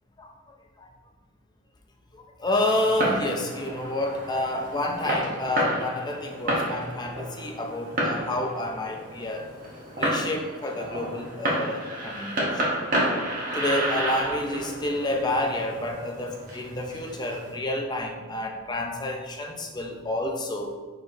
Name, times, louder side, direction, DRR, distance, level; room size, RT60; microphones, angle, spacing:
voice 1, 0.2-0.9 2.1-9.5 10.0-12.6 13.5-20.7, left 1 dB, 20° left, 1 dB, 0.4 m, -29 dB
Fireworks, 2.7-17.5, right 1 dB, 40° right, 1.0 m, -31 dB
4.7 x 4.0 x 2.6 m, 1.4 s
head